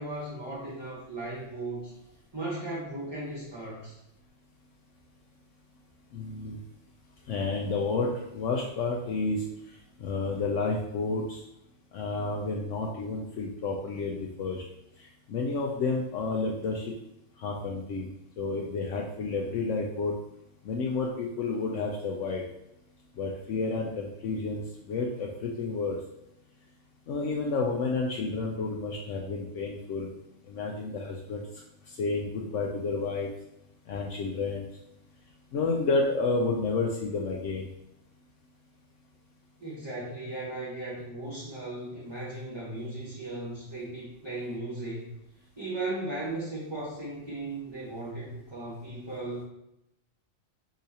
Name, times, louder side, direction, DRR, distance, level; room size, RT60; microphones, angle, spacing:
voice 1, 0.0-1.9 2.3-4.0 39.6-45.1 45.6-49.4, right 2 dB, 25° right, -7 dB, 0.9 m, -36 dB
voice 2, 6.1-6.6 7.3-9.4 10.0-11.4 11.9-14.6 15.0-16.9 17.4-18.1 18.4-20.1 20.6-22.4 23.2-26.0 27.1-30.1 30.5-31.4 31.9-33.3 33.9-34.7 35.5-37.7, left 3 dB, 70° left, -1 dB, 0.9 m, -30 dB
4.7 x 3.9 x 2.8 m, 0.84 s
omnidirectional pair, 1.4 m